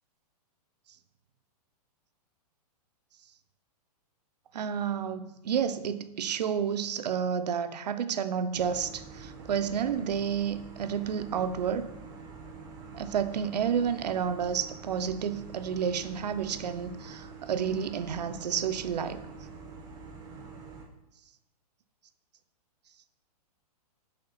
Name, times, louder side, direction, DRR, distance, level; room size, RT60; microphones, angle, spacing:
voice 1, 4.5-11.9 12.9-19.2, right 7 dB, 90° right, 0.6 m, -30 dB
sound 1, 8.5-20.9, right 4 dB, 20° right, 0.8 m, -46 dB
6.5 x 4.4 x 4.1 m
hypercardioid pair, 155°, 20 cm